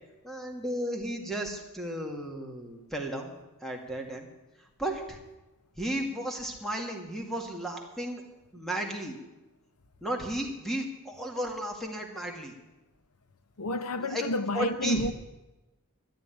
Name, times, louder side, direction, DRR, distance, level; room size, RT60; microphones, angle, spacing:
voice 1, 0.2-3.3 3.6-4.3 4.8-5.2 5.8-8.2 8.5-9.2 10.0-12.5 14.0-14.3 14.5-15.1, right 1 dB, ahead, 2.2 m, -34 dB
voice 2, 13.6-15.1, left 2 dB, 85° left, 0.9 m, -30 dB
13.0 x 10.0 x 9.9 m
head